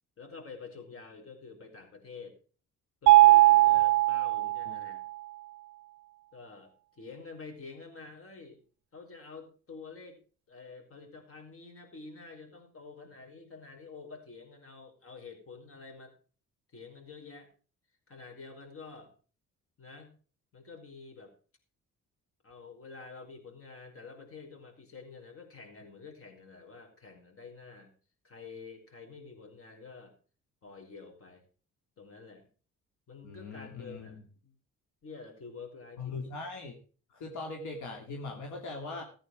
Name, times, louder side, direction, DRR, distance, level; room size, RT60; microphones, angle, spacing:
voice 1, 0.2-2.4 3.0-5.0 6.3-8.6 8.9-10.2 10.5-16.1 16.7-17.5 18.1-19.1 19.8-20.1 20.5-21.3 22.4-27.9 28.2-30.1 30.6-31.4 32.0-32.5 33.1-34.5 35.0-36.1, left 4 dB, 50° left, 4 dB, 4.9 m, -48 dB
Mallet percussion, 3.1-5.0, right 17 dB, 75° right, 0.5 m, -20 dB
voice 2, 4.4-4.8 33.2-34.2 36.0-36.8 37.1-39.0, left 3 dB, 75° left, 2 dB, 2.8 m, -40 dB
14.5 x 9.1 x 4.8 m, 0.39 s
cardioid pair, 90°, 30 cm